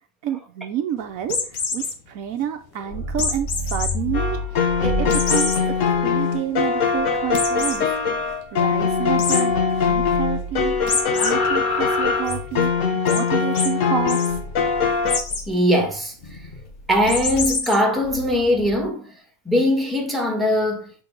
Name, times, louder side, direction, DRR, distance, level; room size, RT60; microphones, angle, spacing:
voice 1, 0.2-7.8 8.5-9.5 9.8-10.7 11.1-14.4, right 10 dB, 70° right, 1.1 m, -29 dB
sound 1, 1.2-1.9 3.2-3.9 4.4-4.5 5.1-5.6 6.1-6.2 6.5-6.6 7.3-7.8 9.2-9.4 10.9-11.3 11.7-12.3 13.1-13.2 13.6-13.7 14.0-14.3 15.1-15.5 17.1-17.8, left 5 dB, 85° left, 1.8 m, -25 dB
sound 2, 2.8-9.2 9.5-12.9 14.3-15.5 16.2-18.8, left 1 dB, 40° left, 0.8 m, -31 dB
sound 3, 4.1-15.2, left 5 dB, 60° left, 1.1 m, -22 dB
voice 2, 15.5-16.1 16.9-19.1 19.4-21.0, equal, ahead, 1.4 m, -21 dB
6.2 x 5.1 x 3.8 m
omnidirectional pair, 1.5 m